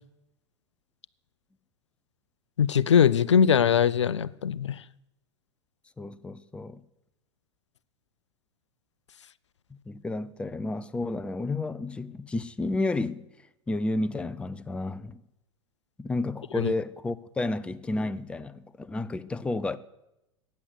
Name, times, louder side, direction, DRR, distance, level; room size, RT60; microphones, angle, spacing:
voice 1, 2.6-4.8 16.6-16.7, left 8 dB, 70° left, 0.5 m, -21 dB
voice 2, 6.0-6.8 9.9-13.3 13.7-15.2 16.0-19.8, left 2 dB, 5° left, 0.5 m, -31 dB
14.5 x 9.3 x 8.2 m
figure-of-eight pair, 90°, 15 cm